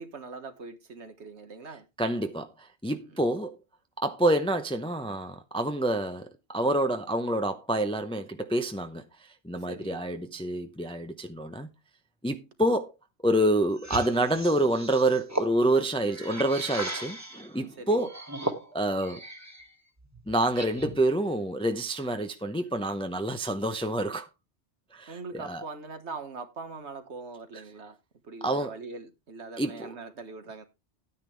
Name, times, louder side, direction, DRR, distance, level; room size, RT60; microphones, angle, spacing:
voice 1, 0.0-1.9 2.9-3.3 9.7-10.0 17.8-18.1 25.1-28.0 28.2-30.6, right 4 dB, 80° right, 1.7 m, -42 dB
voice 2, 2.0-2.5 2.8-3.5 4.0-9.0 9.4-11.7 12.2-12.9 13.2-18.1 18.7-19.2 20.3-24.3 24.9-25.6 28.4-28.7 29.6-29.9, right 1 dB, 5° left, 0.7 m, -27 dB
sound 1, 13.8-17.5 18.0-19.7 20.0-21.1, right 1 dB, 15° right, 1.6 m, -37 dB
10.5 x 9.6 x 3.3 m
omnidirectional pair, 1.1 m